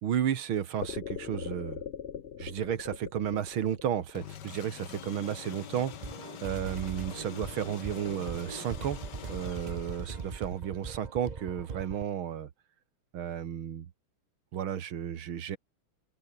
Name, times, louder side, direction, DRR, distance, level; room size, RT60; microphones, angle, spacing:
voice 1, 0.0-1.8 2.4-5.9 6.4-9.0 9.3-12.5 13.1-13.9 14.5-15.6, right 9 dB, 70° right, 2.2 m, -33 dB
sound 1, 0.8-5.0, left 8 dB, 70° left, 0.5 m, -40 dB
sound 2, 4.1-10.7, left 9 dB, 55° left, 1.6 m, -45 dB
sound 3, 5.9-12.0, right 5 dB, 40° right, 0.6 m, -40 dB
open air
omnidirectional pair, 2.4 m